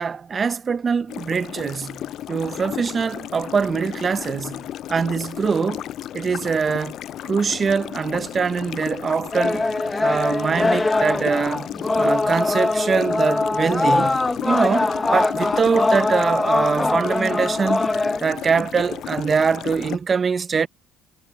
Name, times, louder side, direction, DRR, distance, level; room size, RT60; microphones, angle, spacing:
voice 1, 0.0-2.0 2.3-5.8 6.1-7.0 7.2-9.7 10.0-11.7 11.9-17.9 18.2-20.7, right 5 dB, 35° right, 0.7 m, -23 dB
sound 1, 1.1-20.0, left 12 dB, 60° left, 0.4 m, -34 dB
sound 2, 9.3-18.2, left 2 dB, 15° left, 1.1 m, -22 dB
supercardioid pair, 80°, 0 cm